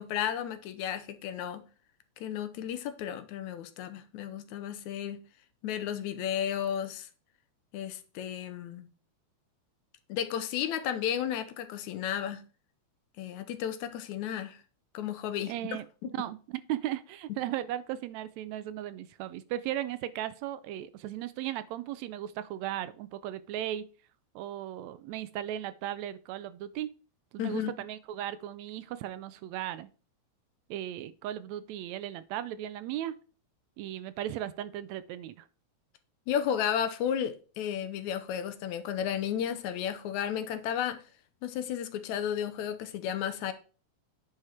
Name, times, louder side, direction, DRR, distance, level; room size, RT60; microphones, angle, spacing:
voice 1, 0.0-1.7 2.2-5.2 5.6-7.1 7.7-8.9 10.1-12.4 13.2-14.6 14.9-15.5 16.0-16.3 17.3-17.4 27.4-27.7 36.3-41.0 41.4-43.5, left 9 dB, 80° left, 2.1 m, -33 dB
voice 2, 15.5-15.9 16.1-23.8 24.4-26.9 27.3-29.9 30.7-33.2 33.8-35.5, right 12 dB, 80° right, 1.7 m, -36 dB
9.5 x 4.9 x 4.3 m
omnidirectional pair, 3.3 m